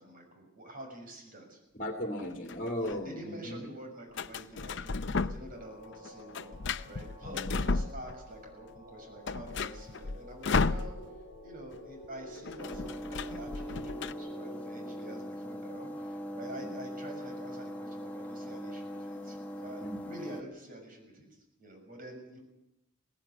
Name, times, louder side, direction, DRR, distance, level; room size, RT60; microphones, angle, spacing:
voice 1, 0.0-1.6 2.8-10.9 11.4-21.3 21.6-22.4, right 1 dB, 45° right, 2 dB, 6.6 m, -47 dB
voice 2, 1.7-3.6 7.2-7.6 16.6-16.7 19.8-20.0, equal, 40° left, 3 dB, 2.3 m, -37 dB
sound 1, 2.2-3.0 4.1-5.6 5.9-8.4 8.8-8.9 9.1-11.3 11.6-11.8 12.0-14.1, left 4 dB, 60° left, 0.7 m, -34 dB
sound 2, 5.6-15.2, equal, 25° right, 6.2 m, -50 dB
sound 3, 12.6-20.4, equal, 10° left, 1.5 m, -41 dB
18.5 x 16.0 x 9.9 m, 0.91 s
head